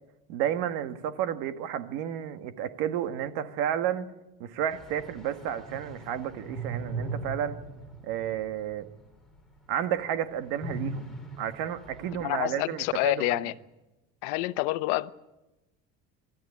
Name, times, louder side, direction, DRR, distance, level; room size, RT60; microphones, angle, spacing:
voice 1, 0.3-4.1 4.4-7.6 8.0-8.9 9.7-13.4, right 10 dB, 70° right, 9 dB, 1.6 m, -31 dB
sound 1, 4.7-9.0 9.4-9.5 10.6-12.3, right 3 dB, ahead, 4.2 m, -39 dB
voice 2, 12.2-13.5 14.2-15.1, left 19 dB, 80° left, 14 dB, 1.0 m, -28 dB
25.0 x 13.0 x 9.5 m, 1.0 s
cardioid pair, 130°, 35 cm